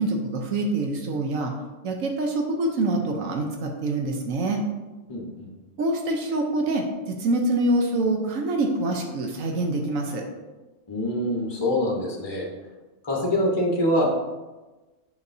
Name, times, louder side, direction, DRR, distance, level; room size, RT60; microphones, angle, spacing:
voice 1, 0.0-1.5 1.8-4.6 5.8-10.2, right 2 dB, 80° right, 2 dB, 1.2 m, -25 dB
voice 2, 5.1-5.5 10.9-12.5 13.0-14.1, left 1 dB, 20° left, -2 dB, 1.0 m, -25 dB
7.9 x 5.1 x 2.7 m, 1.2 s
omnidirectional pair, 1.4 m